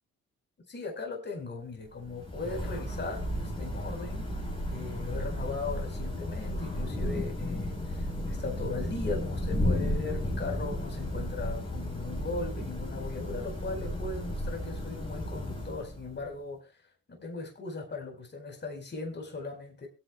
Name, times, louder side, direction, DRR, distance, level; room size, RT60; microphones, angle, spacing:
voice 1, 0.7-4.3 4.7-16.6 17.1-19.9, left 3 dB, 35° left, 4.6 m, -38 dB
Thunder / Rain, 1.9-16.3, left 1 dB, 15° left, 4.3 m, -34 dB
22.5 x 9.3 x 2.3 m
cardioid pair, 90°, 30 cm